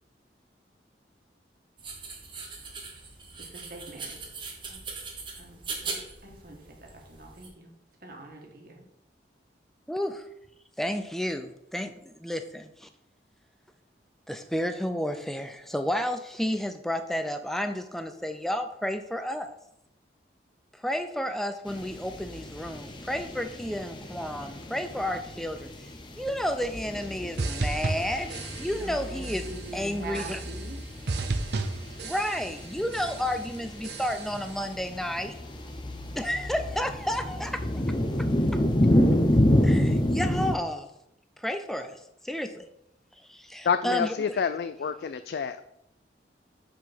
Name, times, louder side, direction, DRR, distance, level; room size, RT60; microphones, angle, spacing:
sound 1, 1.8-7.5, right 4 dB, 30° right, 1.1 m, -40 dB
voice 1, 3.4-4.2 4.7-4.8 5.4-7.7 8.0-8.8 28.8-30.8, right 2 dB, 55° right, 1 dB, 1.5 m, -44 dB
voice 2, 9.9-10.3 10.8-12.9 14.3-19.5 20.7-25.9 26.2-29.5 29.7-30.4 32.0-35.4 36.2-37.6 39.6-40.9 41.4-42.7 43.3-44.4, equal, ahead, 8 dB, 0.5 m, -31 dB
sound 2, 21.7-40.6, left 1 dB, 25° left, 0.8 m, -29 dB
sound 3, 27.4-29.0 29.2-29.7 30.1-30.8 31.1-32.7 32.9-33.4 33.8-34.5, right 3 dB, 70° right, 0.7 m, -34 dB
voice 3, 43.7-45.6, left 6 dB, 65° left, 10 dB, 0.3 m, -28 dB
5.7 x 4.9 x 5.9 m, 0.81 s
head